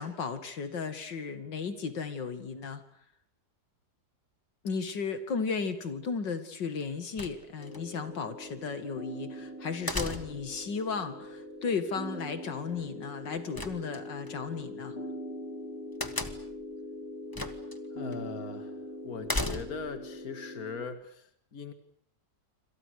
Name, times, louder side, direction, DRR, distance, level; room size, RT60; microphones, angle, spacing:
voice 1, 0.0-2.8 4.6-15.0, left 5 dB, 85° left, 10 dB, 2.8 m, -35 dB
sound 1, 7.2-7.8 9.9-10.6 13.5-14.3 16.0-16.6 17.3-17.8 18.1-18.2 19.2-20.0, left 1 dB, 15° left, 1.5 m, -35 dB
sound 2, 7.6-20.8, left 1 dB, 35° left, 3.1 m, -42 dB
voice 2, 17.9-21.7, left 5 dB, 55° left, 9 dB, 2.5 m, -40 dB
27.0 x 26.5 x 6.6 m, 0.63 s
omnidirectional pair, 1.9 m